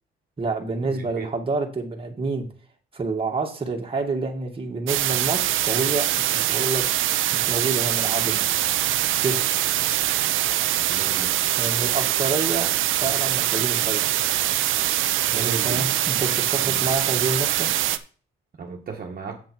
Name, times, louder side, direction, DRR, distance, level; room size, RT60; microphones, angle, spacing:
voice 1, 0.4-2.5 2.9-6.0 6.3-6.8 7.3-8.4 9.2-9.6 11.6-12.7 13.0-14.1 15.3-17.7, right 3 dB, 25° right, 1 dB, 2.3 m, -28 dB
sound 1, 4.9-18.0, right 13 dB, 80° right, 0.7 m, -23 dB
voice 2, 10.9-11.3 15.3-15.8 16.6-16.7 18.6-19.4, right 5 dB, 45° right, 1 dB, 1.7 m, -35 dB
7.8 x 7.7 x 4.6 m, 0.41 s
cardioid pair, 90°, 20 cm